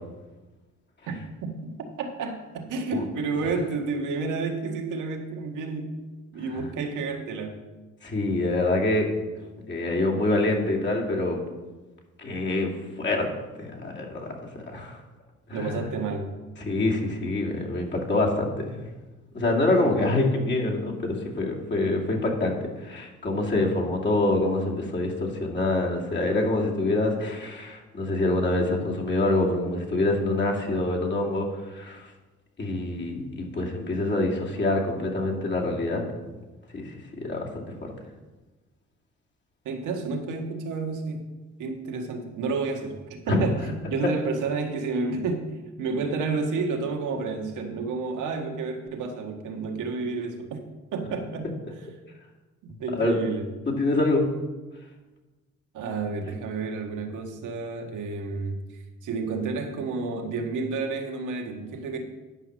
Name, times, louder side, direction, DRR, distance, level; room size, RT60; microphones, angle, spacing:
voice 1, 1.4-1.7 2.0-6.0 6.3-7.6 15.5-16.4 33.5-33.7 39.6-41.3 41.6-45.5 45.8-50.6 50.9-51.8 52.6-53.5 55.7-62.0, right 4 dB, 85° right, 3 dB, 1.6 m, -30 dB
voice 2, 8.0-9.1 9.7-11.4 12.2-12.7 13.0-13.3 13.6-15.0 15.5-15.9 16.6-18.8 19.3-32.1 32.6-36.0 36.7-37.9 43.3-43.6 52.9-53.1 53.7-54.3, left 2 dB, 35° left, -1 dB, 2.4 m, -26 dB
9.9 x 5.9 x 6.2 m, 1.2 s
cardioid pair, 90°, 30 cm